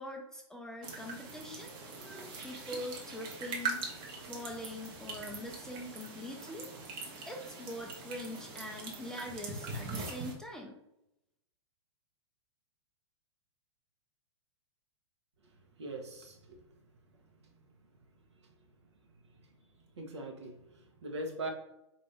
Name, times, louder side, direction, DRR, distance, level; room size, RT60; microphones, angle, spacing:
voice 1, 0.0-3.9 4.2-6.7 7.3-10.8, left 1 dB, 5° left, 0 dB, 0.4 m, -43 dB
sound 1, 0.8-10.3, right 3 dB, 35° right, 1.0 m, -42 dB
voice 2, 15.4-16.6 17.4-17.5 19.4-19.5 20.0-21.5, right 1 dB, 70° right, 2 dB, 1.0 m, -42 dB
4.2 x 2.7 x 3.2 m, 0.84 s
figure-of-eight pair, 105°, 15 cm